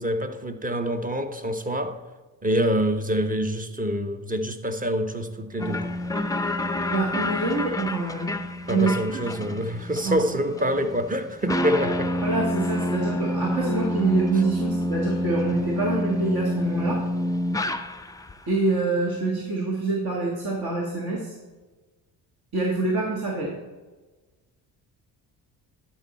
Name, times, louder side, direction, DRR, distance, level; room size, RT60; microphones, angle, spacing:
voice 1, 0.0-2.0 2.4-5.9 8.7-12.1, equal, 15° right, 8 dB, 1.0 m, -26 dB
sound 1, 5.6-18.3, left 1 dB, 10° left, 0.5 m, -28 dB
voice 2, 6.9-8.3 8.7-9.5 10.0-10.3 12.2-17.0 18.5-21.3 22.5-23.5, right 3 dB, 50° right, -2 dB, 1.9 m, -26 dB
12.0 x 5.5 x 4.2 m, 1.2 s
hypercardioid pair, 55°, 49 cm